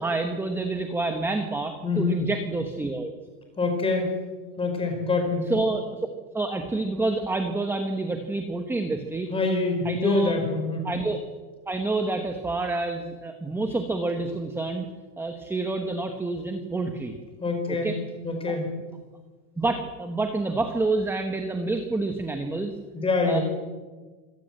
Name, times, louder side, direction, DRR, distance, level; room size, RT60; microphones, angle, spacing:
voice 1, 0.0-3.1 5.4-5.8 6.3-9.3 9.8-10.3 10.8-11.2 11.7-14.9 15.2-17.1 17.7-18.0 18.5-18.6 19.6-22.7 23.2-23.4, right 2 dB, 5° right, 6 dB, 1.2 m, -28 dB
voice 2, 1.8-2.2 3.6-4.2 4.6-5.5 9.3-10.9 17.4-17.9 18.2-18.7 22.9-23.4, left 3 dB, 10° left, 3 dB, 5.0 m, -25 dB
26.0 x 17.5 x 7.7 m, 1.3 s
supercardioid pair, 160°, 45 cm